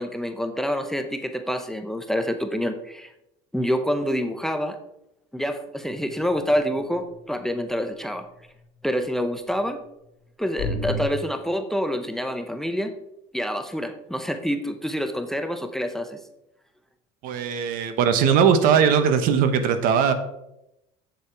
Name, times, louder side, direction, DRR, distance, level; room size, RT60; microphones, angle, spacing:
voice 1, 0.0-3.1 3.5-4.8 5.3-8.2 8.8-9.8 10.4-12.9 13.3-16.2, equal, ahead, 8 dB, 0.7 m, -27 dB
sound 1, 5.9-6.1 10.6-11.0, left 2 dB, 65° left, 1.7 m, -27 dB
voice 2, 17.2-20.1, right 7 dB, 65° right, 10 dB, 1.1 m, -19 dB
8.1 x 7.0 x 4.7 m, 0.85 s
cardioid pair, 125°, 16 cm